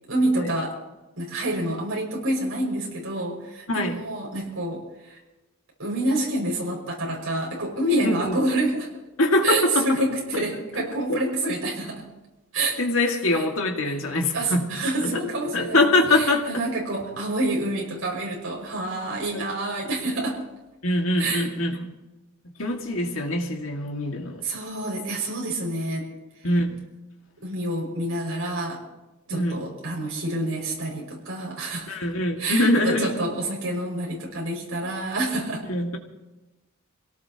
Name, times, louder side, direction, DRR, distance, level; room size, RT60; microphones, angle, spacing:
voice 1, 0.1-0.7 1.2-5.2 5.8-8.9 9.4-12.0 12.5-12.8 13.3-13.4 14.3-20.4 21.2-21.5 24.4-26.1 27.4-28.8 29.3-32.0 32.4-35.6, right 1 dB, 70° right, -3 dB, 6.1 m, -27 dB
voice 2, 3.7-4.0 8.0-8.4 9.2-10.0 10.3-10.5 10.7-11.2 12.8-14.7 15.0-16.7 19.3-19.5 20.8-21.9 22.6-24.4 26.4-26.9 29.3-29.6 31.9-33.1 35.6-36.0, left 1 dB, 65° left, 2 dB, 2.2 m, -24 dB
25.5 x 17.5 x 3.0 m, 1.1 s
head